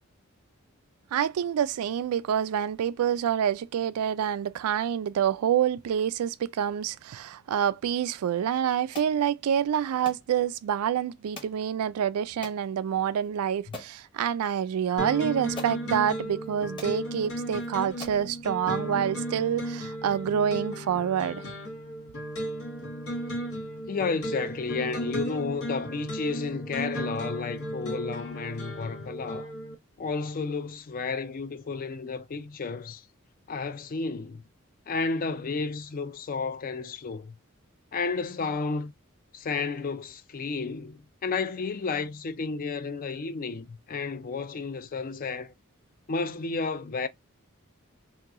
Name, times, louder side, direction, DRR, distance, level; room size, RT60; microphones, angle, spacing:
voice 1, 1.1-21.4, right 9 dB, 90° right, 0.3 m, -27 dB
sound 1, 8.9-9.2 10.0-10.2 11.3-11.6 12.4-12.6 13.2-13.3 13.7-14.0 15.0-15.1 15.5-15.8 16.4-16.5 16.8-17.0 17.6-17.7 18.0-18.3, left 3 dB, 25° left, 1.0 m, -42 dB
sound 2, 15.0-29.7, equal, 85° left, 1.2 m, -35 dB
voice 2, 23.9-29.5 30.0-33.0 33.5-34.4 34.9-37.3 37.9-38.9 39.3-45.5 46.1-47.1, left 4 dB, 40° left, 0.4 m, -32 dB
2.9 x 2.3 x 3.5 m
head